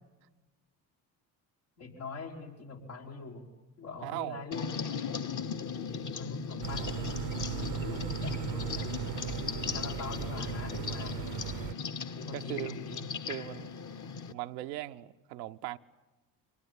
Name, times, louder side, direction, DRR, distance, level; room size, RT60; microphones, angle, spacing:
voice 1, 1.8-3.5 3.8-4.7 5.9-7.2 7.5-9.0 9.6-11.3 12.2-13.0, left 4 dB, 85° left, 4.3 m, -43 dB
voice 2, 4.0-4.4 9.6-9.9 12.3-12.7 13.3-13.7 14.3-15.8, right 15 dB, 85° right, 0.8 m, -39 dB
sound 1, 4.5-14.3, left 6 dB, 40° left, 1.0 m, -37 dB
sound 2, 6.6-11.7, right 13 dB, 50° right, 0.7 m, -37 dB
24.0 x 20.0 x 8.4 m
hypercardioid pair, 55°, 49 cm